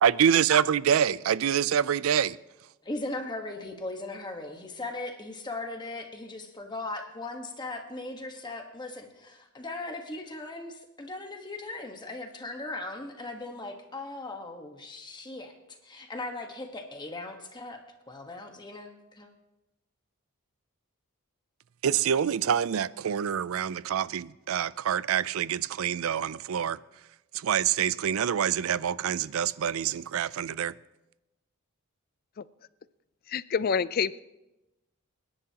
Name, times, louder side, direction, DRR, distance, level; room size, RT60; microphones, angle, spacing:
voice 1, 0.0-2.4 21.8-26.8 27.3-30.7, right 8 dB, 70° right, 0.4 m, -26 dB
voice 2, 2.8-15.5 15.8-19.3, left 2 dB, 20° left, 1.3 m, -38 dB
voice 3, 33.3-34.2, left 6 dB, 45° left, 0.4 m, -27 dB
28.0 x 10.5 x 2.9 m
head